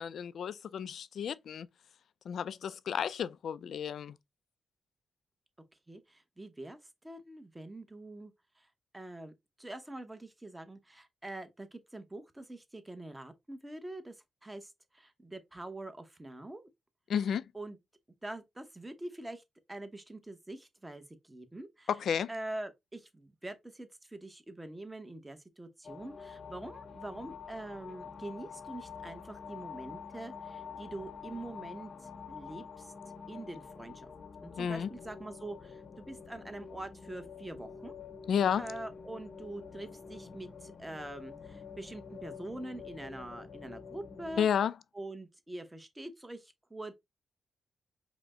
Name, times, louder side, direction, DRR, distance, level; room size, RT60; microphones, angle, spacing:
voice 1, 0.0-1.7 2.3-4.2 17.1-17.5 21.9-22.3 34.6-34.9 38.3-38.7 44.4-44.7, left 8 dB, 75° left, 0.3 m, -32 dB
voice 2, 5.9-6.8 7.0-8.7 8.9-14.1 14.4-16.7 17.5-17.8 18.2-19.4 19.7-21.9 22.3-32.9 33.3-34.1 34.4-37.9 38.6-44.5 44.9-47.0, right 1 dB, 15° right, 0.8 m, -44 dB
sound 1, 25.8-44.4, left 6 dB, 55° left, 0.7 m, -47 dB
5.0 x 2.1 x 3.6 m
cardioid pair, 90°, 0 cm